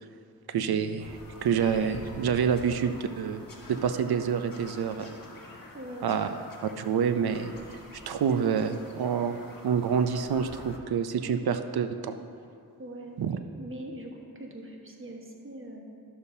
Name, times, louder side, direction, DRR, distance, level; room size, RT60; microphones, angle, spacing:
voice 1, 0.5-3.4 3.7-5.1 6.0-6.3 6.6-7.5 8.1-12.2 13.2-13.4, right 7 dB, 70° right, 9 dB, 0.6 m, -27 dB
Bird vocalization bird call bird song, 1.0-10.8, left 2 dB, 55° left, 1.2 m, -47 dB
voice 2, 5.7-6.4 12.8-13.2 13.6-15.8, right 1 dB, 30° right, 0 dB, 1.3 m, -42 dB
11.5 x 6.8 x 2.7 m, 2.4 s
cardioid pair, 50°, 39 cm